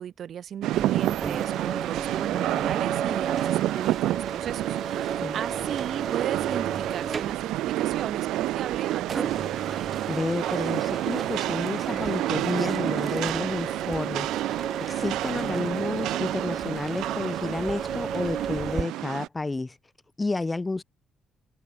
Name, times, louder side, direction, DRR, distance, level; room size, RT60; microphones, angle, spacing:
voice 1, 0.0-9.6, right 9 dB, 65° right, 3.3 m, -36 dB
Rain, 0.6-19.3, right 15 dB, 90° right, 0.5 m, -29 dB
sound 1, 0.7-18.8, right 6 dB, 45° right, 3.3 m, -35 dB
voice 2, 10.1-19.8 20.2-20.8, left 3 dB, 20° left, 5.9 m, -31 dB
cardioid pair, 90°, 0 cm